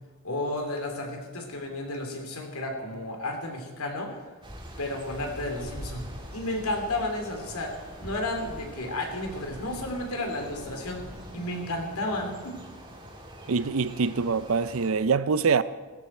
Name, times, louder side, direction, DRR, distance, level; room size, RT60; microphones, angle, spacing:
voice 1, 0.2-4.2 4.8-11.1 11.3-12.6, left 1 dB, 85° left, 2.9 m, -32 dB
sound 1, 4.4-14.9, equal, 20° right, 2.0 m, -43 dB
voice 2, 13.5-15.6, right 5 dB, 70° right, 0.6 m, -24 dB
17.0 x 14.0 x 4.4 m
head